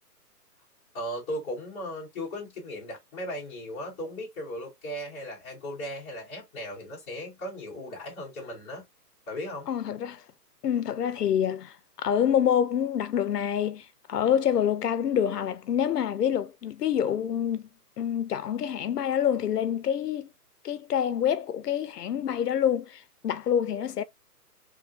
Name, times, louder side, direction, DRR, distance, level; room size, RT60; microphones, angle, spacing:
voice 1, 0.9-8.8 9.3-9.7, equal, 10° left, 0.6 m, -37 dB
voice 2, 9.7-10.2 10.6-17.6 18.0-20.3 20.6-24.0, left 9 dB, 75° left, 0.5 m, -27 dB
2.9 x 2.3 x 2.4 m
figure-of-eight pair, 140°, 48 cm